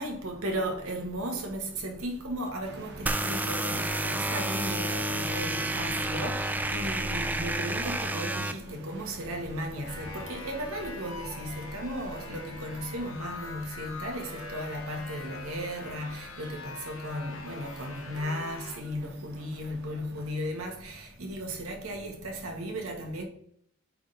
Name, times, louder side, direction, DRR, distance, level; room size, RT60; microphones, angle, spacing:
voice 1, 0.0-23.2, equal, 80° right, 1.5 m, -35 dB
sound 1, 2.6-20.3, right 2 dB, 50° right, 1.0 m, -49 dB
sound 2, 3.1-8.5, right 1 dB, 10° right, 0.4 m, -30 dB
sound 3, 9.8-18.8, left 4 dB, 70° left, 1.2 m, -43 dB
8.5 x 3.7 x 3.9 m
head